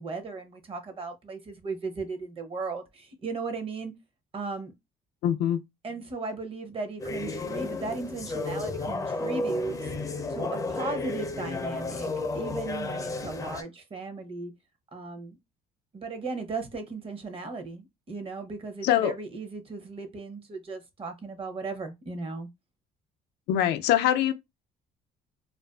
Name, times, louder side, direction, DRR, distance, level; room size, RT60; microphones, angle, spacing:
voice 1, 0.0-3.9 4.3-4.7 5.8-10.0 10.3-14.5 14.9-15.4 15.9-22.5, right 4 dB, 35° right, 0.7 m, -36 dB
voice 2, 5.2-5.6 18.8-19.1 23.5-24.3, left 11 dB, 80° left, 0.4 m, -23 dB
sound 1, 7.0-13.6, left 3 dB, 20° left, 0.4 m, -32 dB
2.5 x 2.3 x 2.2 m
cardioid pair, 110°, 17 cm